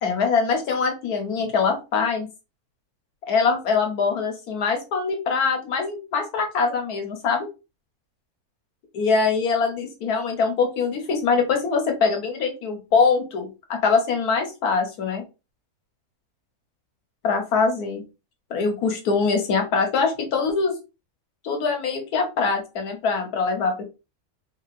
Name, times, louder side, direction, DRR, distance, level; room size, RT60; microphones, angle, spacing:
voice 1, 0.0-2.3 3.3-7.5 8.9-15.2 17.2-18.0 18.5-20.7 21.4-23.8, left 5 dB, 80° left, 4 dB, 1.5 m, -23 dB
4.2 x 2.8 x 2.4 m, 0.28 s
omnidirectional pair, 1.6 m